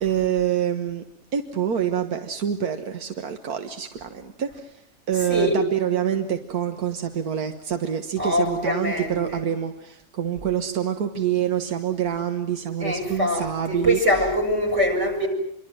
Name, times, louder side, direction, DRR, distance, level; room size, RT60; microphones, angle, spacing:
voice 1, 0.0-1.0 1.3-4.7 5.1-14.0, right 9 dB, 90° right, 7 dB, 1.8 m, -26 dB
voice 2, 8.2-9.4 12.8-15.3, left 1 dB, 50° right, 6 dB, 6.2 m, -23 dB
26.5 x 24.0 x 7.6 m, 0.74 s
omnidirectional pair, 1.6 m